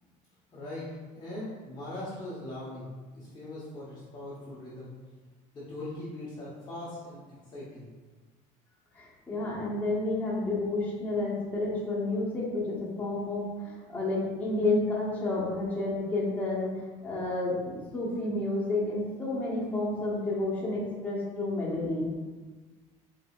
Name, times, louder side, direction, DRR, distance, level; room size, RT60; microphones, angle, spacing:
voice 1, 0.5-2.9 3.1-4.9 5.5-7.9, left 1 dB, 30° left, -8 dB, 1.0 m, -40 dB
voice 2, 8.9-22.1, left 2 dB, 10° left, -7 dB, 1.3 m, -30 dB
4.9 x 3.7 x 2.4 m, 1.3 s
cardioid pair, 130°, 16 cm